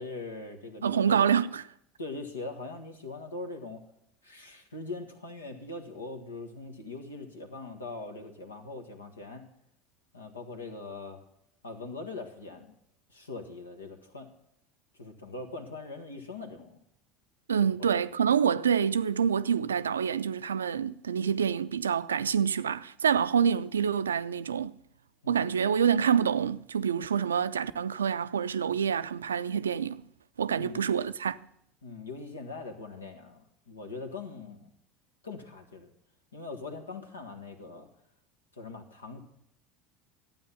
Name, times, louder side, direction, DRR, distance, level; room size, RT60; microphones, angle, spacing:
voice 1, 0.0-1.2 2.0-3.8 4.2-9.4 10.1-11.2 11.6-12.7 13.1-14.3 15.0-16.8 17.9-18.0 25.2-25.5 30.5-30.8 31.8-34.7 35.2-35.9 36.3-37.9 38.5-39.2, left 3 dB, 85° left, 1.5 m, -41 dB
voice 2, 0.8-1.6 17.5-24.8 25.3-30.0 30.4-31.4, right 7 dB, 80° right, 0.4 m, -27 dB
12.5 x 8.9 x 5.5 m
figure-of-eight pair, 70°, 0 cm